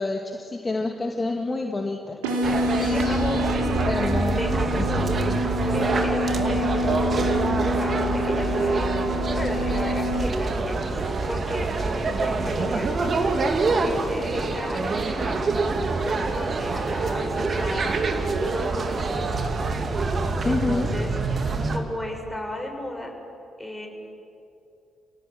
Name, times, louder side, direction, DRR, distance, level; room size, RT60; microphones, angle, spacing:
voice 1, 0.0-2.2 2.8-3.4 3.9-5.4 20.4-20.9, left 2 dB, 25° left, 2 dB, 2.4 m, -28 dB
sound 1, 2.2-10.2, left 1 dB, 80° right, 3.4 m, -27 dB
sound 2, 2.4-21.8, right 3 dB, 45° right, 2.8 m, -25 dB
voice 2, 2.9-3.2 4.3-5.1 5.7-7.4 7.7-8.9 9.3-12.9 13.7-15.5 16.0-19.3 20.5-21.1 21.4-23.1 23.6-23.9, left 1 dB, 5° left, 1 dB, 7.0 m, -34 dB
29.0 x 17.5 x 9.3 m, 2.7 s
hypercardioid pair, 45°, 0 cm